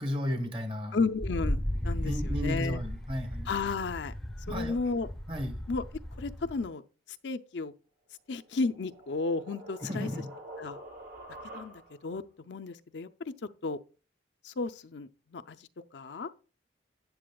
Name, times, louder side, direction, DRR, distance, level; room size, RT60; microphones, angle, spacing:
voice 1, 0.0-1.0 2.0-3.5 4.5-4.8 5.3-5.7 9.8-10.3, left 1 dB, 30° right, 1.2 m, -34 dB
voice 2, 0.9-2.8 3.5-4.1 4.5-5.1 5.7-5.8 6.2-6.8 7.2-7.7 8.3-10.1 10.6-10.8 11.5-13.3 13.6-13.8 14.4-15.6 15.9-16.3, left 4 dB, 70° left, 0.5 m, -33 dB
Wind, 1.2-6.7, equal, 5° left, 0.7 m, -35 dB
sound 1, 8.4-12.1, right 1 dB, 55° right, 1.9 m, -47 dB
12.5 x 8.4 x 2.3 m
head